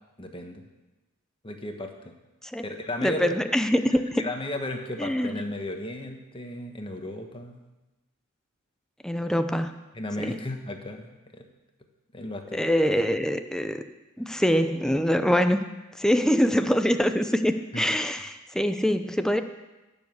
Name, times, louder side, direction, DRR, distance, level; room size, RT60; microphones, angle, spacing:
voice 1, 0.2-0.6 1.4-2.1 2.6-3.4 4.2-7.6 9.9-11.5 12.1-12.7 17.7-17.8, left 1 dB, 25° left, 4 dB, 1.3 m, -35 dB
voice 2, 3.0-4.2 5.0-5.4 9.0-9.7 10.2-10.4 12.5-13.8 14.2-15.6 15.9-19.4, equal, 5° left, 8 dB, 0.6 m, -24 dB
17.0 x 7.2 x 7.1 m, 1.1 s
head